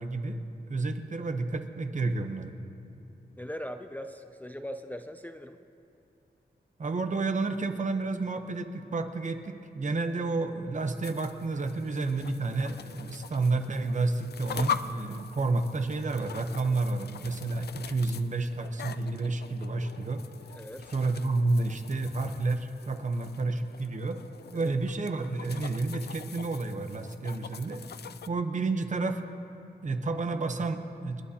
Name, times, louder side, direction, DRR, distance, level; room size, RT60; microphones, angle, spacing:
voice 1, 0.0-2.5 6.8-20.2 20.9-24.2 24.5-27.8 28.3-29.2 29.8-31.2, right 3 dB, 45° right, 7 dB, 0.8 m, -30 dB
voice 2, 3.4-5.6 20.5-20.9 24.5-24.8, equal, 10° left, 7 dB, 0.4 m, -40 dB
sound 1, 10.9-28.3, left 7 dB, 70° left, 0.4 m, -43 dB
29.5 x 11.0 x 2.8 m, 2.8 s
wide cardioid pair, 150°, 18 cm